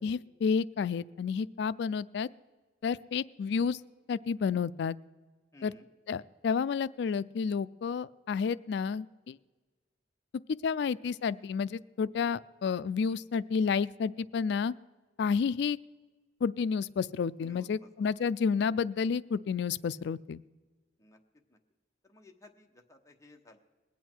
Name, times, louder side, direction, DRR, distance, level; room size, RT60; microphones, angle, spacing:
voice 1, 0.0-2.3 2.8-3.8 4.1-5.0 5.6-5.7 6.1-9.4 10.6-14.7 15.2-15.8 16.4-20.4, left 6 dB, 65° left, 18 dB, 0.3 m, -30 dB
voice 2, 5.5-5.9 17.4-18.1 21.0-21.2 21.5-21.6 22.0-23.6, left 2 dB, 15° left, 3 dB, 1.0 m, -56 dB
21.0 x 8.3 x 4.5 m, 1.3 s
head